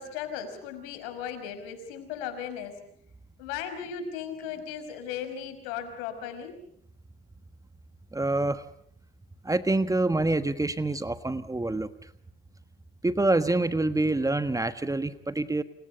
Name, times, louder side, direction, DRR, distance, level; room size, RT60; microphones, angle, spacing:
voice 1, 0.0-2.8 3.4-6.5, left 8 dB, 75° left, 9 dB, 5.5 m, -36 dB
voice 2, 8.1-8.6 9.4-12.1 13.0-15.6, right 2 dB, 10° right, 12 dB, 1.5 m, -26 dB
29.5 x 27.0 x 5.4 m, 0.68 s
hypercardioid pair, 80°, 29 cm